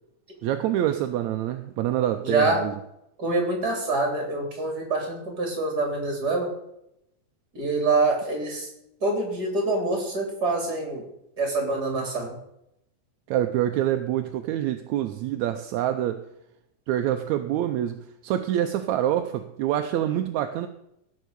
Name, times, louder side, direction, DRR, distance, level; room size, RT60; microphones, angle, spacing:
voice 1, 0.4-2.7 13.3-16.3 16.9-20.7, right 12 dB, 75° right, 1.9 m, -26 dB
voice 2, 2.2-2.6 3.2-6.5 7.5-8.7 9.0-11.0 11.4-12.4, right 2 dB, 30° right, 3.9 m, -25 dB
16.0 x 6.5 x 6.8 m
omnidirectional pair, 3.6 m